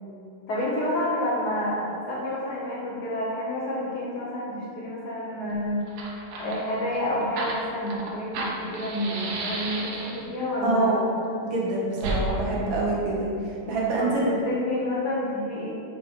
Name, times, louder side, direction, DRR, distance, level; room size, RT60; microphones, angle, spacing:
voice 1, 0.5-5.8 6.4-11.1 12.4-12.5 14.0-15.7, left 1 dB, 55° left, -5 dB, 1.4 m, -29 dB
Fire, 5.5-5.6 5.8-10.4 12.0-12.2, right 2 dB, 85° right, 1.9 m, -33 dB
voice 2, 10.6-11.0 11.5-14.4, right 2 dB, 65° right, -4 dB, 1.9 m, -26 dB
5.8 x 4.7 x 5.3 m, 2.6 s
omnidirectional pair, 2.4 m